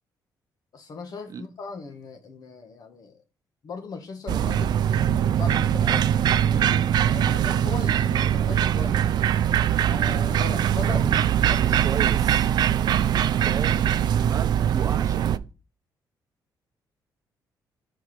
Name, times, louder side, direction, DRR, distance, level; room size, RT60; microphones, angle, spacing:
voice 1, 0.7-3.2 3.6-9.1 9.8-12.0, left 4 dB, 55° left, 1.4 m, -39 dB
sound 1, 4.3-15.4, right 10 dB, 65° right, 0.4 m, -22 dB
voice 2, 11.6-12.5 13.4-15.4, right 6 dB, 45° right, 0.9 m, -35 dB
4.7 x 4.6 x 5.9 m
cardioid pair, 95°, 8 cm